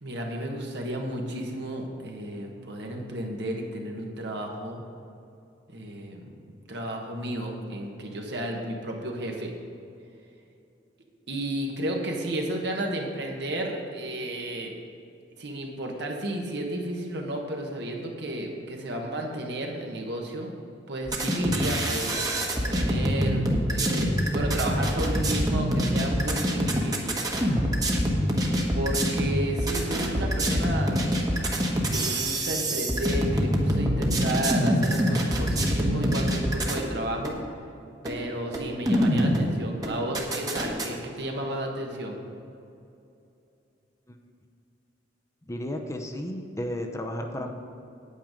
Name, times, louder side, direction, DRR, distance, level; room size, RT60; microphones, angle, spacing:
voice 1, 0.0-4.8 5.7-6.3 6.7-9.5 11.3-14.7 15.4-20.5 20.9-22.2 22.7-27.2 28.7-31.0 31.9-37.3 38.0-42.2, right 1 dB, 65° right, 1 dB, 1.5 m, -32 dB
sound 1, 21.0-36.9 37.2-37.4 38.0-38.2 38.5-39.5 39.8-40.9, equal, 20° right, 1.3 m, -25 dB
voice 2, 45.4-47.5, left 1 dB, 15° left, 3 dB, 0.7 m, -33 dB
9.2 x 9.1 x 5.1 m, 2.7 s
head